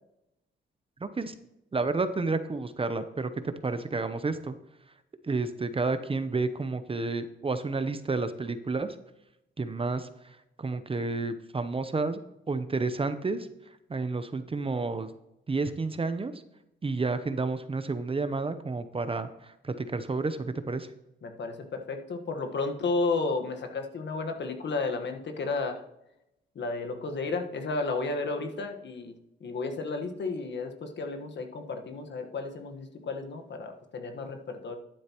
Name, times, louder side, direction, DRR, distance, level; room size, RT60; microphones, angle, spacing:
voice 1, 1.0-1.3 1.7-4.6 5.2-9.0 9.6-12.2 12.5-13.5 13.9-15.1 15.5-16.3 16.8-20.9, right 3 dB, 25° right, 11 dB, 0.8 m, -30 dB
voice 2, 21.2-25.8 26.5-29.1 29.4-34.7, left 3 dB, 60° left, 5 dB, 1.4 m, -32 dB
11.5 x 9.3 x 3.0 m, 0.85 s
cardioid pair, 80°, 21 cm